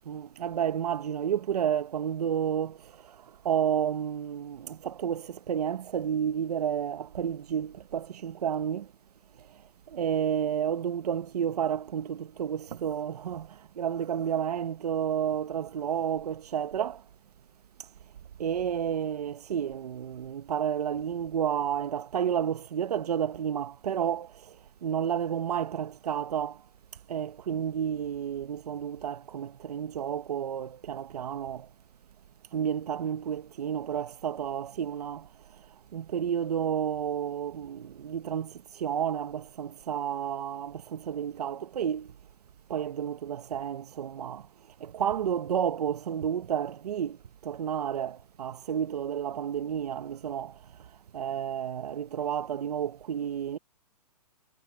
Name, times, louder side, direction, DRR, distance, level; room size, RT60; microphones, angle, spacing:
voice 1, 0.1-2.8 3.4-8.9 9.9-17.0 18.4-24.3 24.8-26.6 27.1-31.7 32.5-35.3 35.9-42.1 42.7-44.4 44.8-47.2 47.4-50.5 51.1-53.6, right 9 dB, 70° right, 1.1 m, -31 dB
hypercardioid pair, 170°, 20 cm